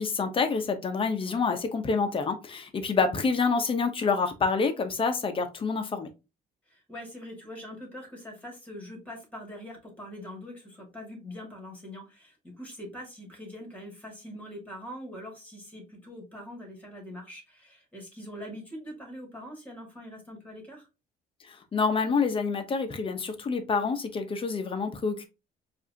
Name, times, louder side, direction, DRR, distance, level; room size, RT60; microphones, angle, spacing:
voice 1, 0.0-6.1 21.5-25.3, left 4 dB, 30° left, 0.8 m, -27 dB
voice 2, 6.7-20.9, equal, 10° left, 2.1 m, -43 dB
4.7 x 2.6 x 2.7 m
cardioid pair, 110°, 17 cm